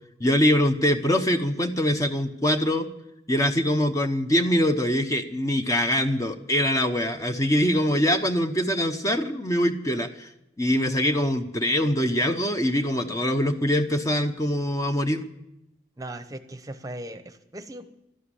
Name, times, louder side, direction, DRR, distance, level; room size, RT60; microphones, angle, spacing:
voice 1, 0.2-2.9 3.3-10.3 10.6-15.3, equal, 20° left, 7 dB, 0.8 m, -23 dB
voice 2, 16.0-17.9, right 1 dB, 20° right, 10 dB, 0.9 m, -38 dB
13.0 x 11.5 x 9.9 m, 0.85 s
head